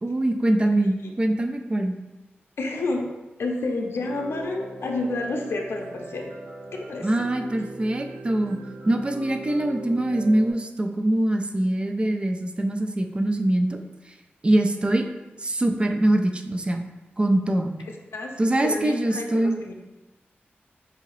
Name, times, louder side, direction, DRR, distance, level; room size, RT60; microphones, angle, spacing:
voice 1, 0.0-1.9 7.0-8.6 8.9-13.8 14.4-15.1 15.4-16.9 17.2-17.7 18.4-19.6, right 1 dB, 25° right, 5 dB, 0.4 m, -23 dB
voice 2, 2.6-3.1 3.4-6.3 6.7-7.1 18.1-18.3 18.6-19.7, left 2 dB, 75° left, 1 dB, 0.5 m, -29 dB
sound 1, 4.0-10.5, right 2 dB, 85° right, 0.7 m, -40 dB
4.8 x 2.7 x 3.0 m, 1.1 s
wide cardioid pair, 105°, 4 cm